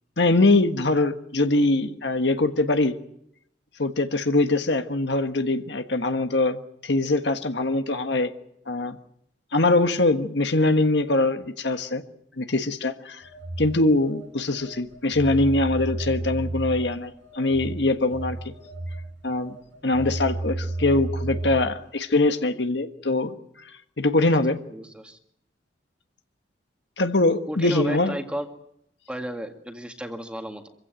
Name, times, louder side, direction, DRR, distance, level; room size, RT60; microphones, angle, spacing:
voice 1, 0.2-2.9 3.8-8.3 8.7-8.9 9.5-12.0 12.4-13.2 13.6-18.4 19.2-19.5 19.8-23.3 24.0-24.6 27.0-28.1, left 2 dB, 70° left, 7 dB, 1.4 m, -22 dB
Telephone, 13.2-21.8, right 2 dB, 80° right, 4.8 m, -32 dB
voice 2, 24.7-25.2 27.5-28.5 29.1-30.7, equal, 5° right, 5 dB, 2.0 m, -33 dB
25.0 x 16.0 x 9.1 m, 0.76 s
head